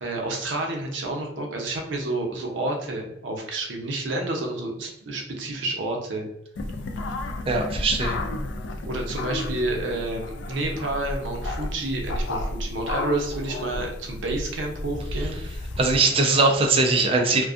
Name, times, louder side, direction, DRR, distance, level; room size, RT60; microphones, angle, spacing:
voice 1, 0.0-6.3 8.8-15.4, right 2 dB, 80° right, 2 dB, 0.6 m, -29 dB
sound 1, 6.6-16.0, left 1 dB, 70° left, 0.3 m, -32 dB
voice 2, 7.5-8.2 15.8-17.5, right 3 dB, 30° right, 2 dB, 0.4 m, -21 dB
2.5 x 2.2 x 2.4 m, 0.80 s
head